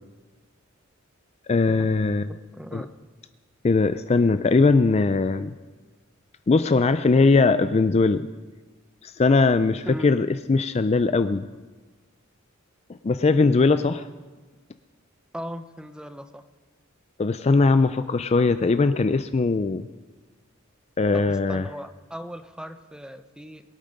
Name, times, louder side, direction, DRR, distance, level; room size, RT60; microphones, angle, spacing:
voice 1, 1.5-2.3 2.7-2.8 3.6-5.5 6.5-8.3 9.0-11.4 13.0-14.1 17.2-19.9 21.0-21.7, left 3 dB, 30° left, 12 dB, 0.4 m, -20 dB
voice 2, 2.5-2.9 9.9-10.1 15.3-16.4 21.1-23.6, equal, 5° right, 9 dB, 0.7 m, -38 dB
23.5 x 8.8 x 5.2 m, 1.3 s
head